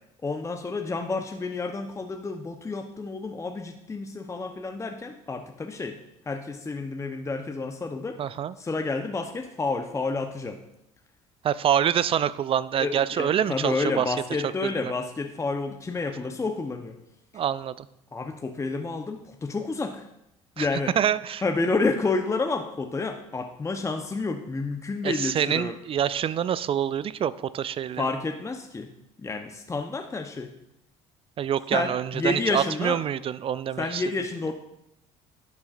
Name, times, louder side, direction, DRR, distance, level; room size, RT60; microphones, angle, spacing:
voice 1, 0.2-6.0 6.3-8.2 8.6-10.6 12.8-17.0 18.1-20.0 20.6-20.9 21.4-25.8 28.0-28.9 29.2-30.5 31.7-33.0 33.8-34.5, left 3 dB, 20° left, 4 dB, 0.8 m, -30 dB
voice 2, 8.2-8.5 11.4-14.1 14.6-14.9 17.3-17.9 20.6-20.7 21.0-21.4 25.0-28.0 31.4-34.0, right 9 dB, 40° right, 17 dB, 0.4 m, -26 dB
11.5 x 7.1 x 2.5 m, 0.82 s
hypercardioid pair, 65°, 15 cm